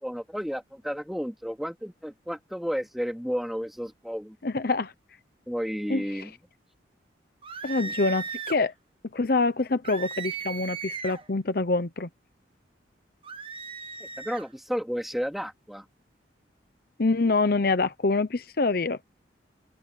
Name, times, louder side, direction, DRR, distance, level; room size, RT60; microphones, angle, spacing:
voice 1, 0.0-4.4 5.5-6.3 7.8-7.9 14.0-15.8, equal, ahead, 3.3 m, -32 dB
voice 2, 4.4-4.9 5.9-6.0 7.6-8.7 9.1-12.1 17.0-19.0, left 3 dB, 55° left, 0.8 m, -25 dB
sound 1, 7.4-8.6 9.8-11.3 13.2-14.5, right 6 dB, 30° right, 1.4 m, -37 dB
open air
head